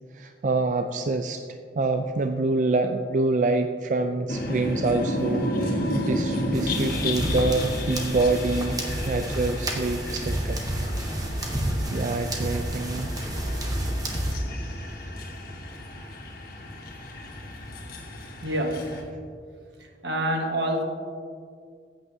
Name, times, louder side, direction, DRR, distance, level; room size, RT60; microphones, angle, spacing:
voice 1, 0.1-1.4 1.8-8.8 9.1-10.6 11.9-13.1, right 3 dB, 45° right, 7 dB, 0.3 m, -26 dB
sound 1, 4.3-19.0, left 1 dB, 55° left, 1.4 m, -32 dB
sound 2, 6.5-14.3, right 1 dB, 20° right, 1.0 m, -30 dB
voice 2, 18.4-19.0 19.8-20.8, right 1 dB, 80° right, 2 dB, 1.4 m, -27 dB
14.5 x 8.7 x 2.7 m, 2.2 s
head